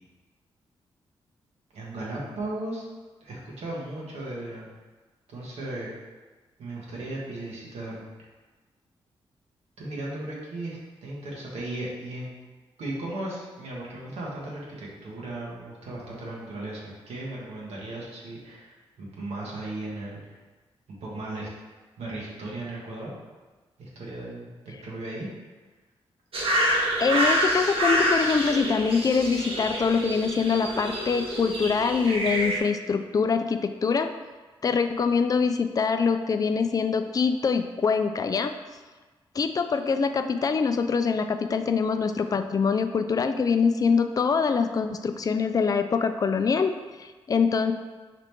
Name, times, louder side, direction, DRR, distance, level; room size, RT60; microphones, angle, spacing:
voice 1, 1.7-2.9 3.2-4.7 5.3-5.9 6.6-8.0 9.8-12.3 12.8-20.4 21.0-21.5 22.0-23.1 23.8-25.3, right 2 dB, 80° right, -4 dB, 1.2 m, -36 dB
sound 1, 26.3-32.6, equal, 60° right, 1.0 m, -27 dB
voice 2, 27.0-34.1 34.6-38.5 39.4-46.7 47.0-47.7, left 5 dB, 35° left, 8 dB, 0.3 m, -24 dB
4.8 x 3.0 x 3.4 m, 1.3 s
cardioid pair, 60°, 11 cm